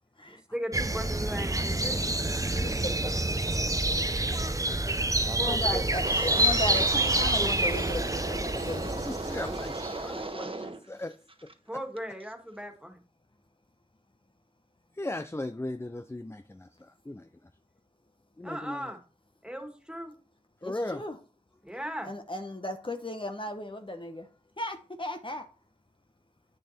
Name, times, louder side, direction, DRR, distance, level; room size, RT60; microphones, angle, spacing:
voice 1, 0.3-2.0 5.4-5.8 11.7-13.0 18.4-19.0 19.4-20.1 21.6-22.1, equal, 5° right, 2.1 m, -37 dB
sound 1, 0.7-10.1, right 1 dB, 25° right, 0.7 m, -28 dB
voice 2, 4.4-5.0 5.4-9.0 20.6-21.2 22.0-24.3 24.6-25.5, left 1 dB, 40° left, 1.0 m, -36 dB
Wind, 6.0-10.8 11.1-11.5 12.0-12.2, right 2 dB, 40° right, 1.2 m, -36 dB
voice 3, 8.9-11.1 15.0-16.7 17.1-17.3 18.4-18.9 20.6-21.0, left 1 dB, 20° left, 0.5 m, -37 dB
8.7 x 6.4 x 4.3 m
wide cardioid pair, 40°, 14 cm